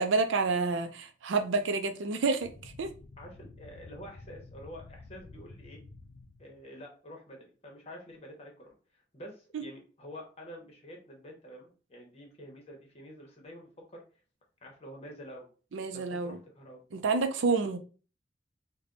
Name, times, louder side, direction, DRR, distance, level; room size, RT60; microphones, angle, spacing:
voice 1, 0.0-2.9 9.5-9.7 15.7-16.4 16.9-17.8, right 4 dB, 90° right, 0.5 m, -29 dB
sound 1, 2.4-6.6, left 3 dB, 70° left, 0.4 m, -51 dB
voice 2, 3.2-5.8 6.4-14.0 14.6-15.5 15.9-16.8 17.5-17.6, equal, 35° left, 1.0 m, -48 dB
3.3 x 2.2 x 3.8 m
head